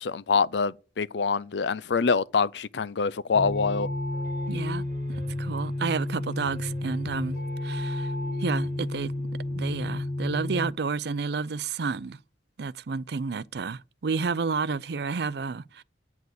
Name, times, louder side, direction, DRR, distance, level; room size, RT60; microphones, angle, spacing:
voice 1, 0.0-3.9, left 5 dB, 75° left, 0.5 m, -25 dB
sound 1, 3.3-10.7, left 1 dB, 60° left, 1.1 m, -31 dB
Piano, 3.4-10.4, right 1 dB, 40° right, 1.3 m, -47 dB
voice 2, 4.5-8.1 8.4-9.1 9.6-12.2 12.6-15.8, right 4 dB, 65° right, 0.5 m, -31 dB
9.4 x 8.2 x 6.6 m
head